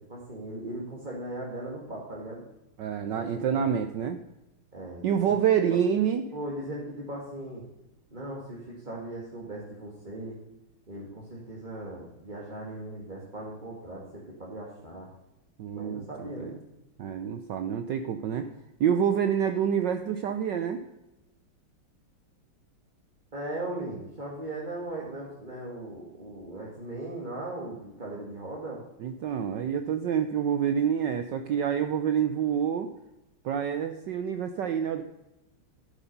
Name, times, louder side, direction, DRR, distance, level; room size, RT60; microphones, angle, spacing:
voice 1, 0.1-2.4 3.0-3.6 4.7-5.4 6.3-7.7 8.1-10.4 10.9-15.1 15.7-16.5 23.3-28.8, right 1 dB, 20° right, -5 dB, 2.0 m, -38 dB
voice 2, 2.8-4.2 5.0-6.2 15.6-16.6 17.0-18.5 18.8-20.8 29.0-32.9 33.4-35.0, right 8 dB, 65° right, 8 dB, 1.2 m, -27 dB
12.5 x 9.2 x 5.4 m, 0.95 s
omnidirectional pair, 2.4 m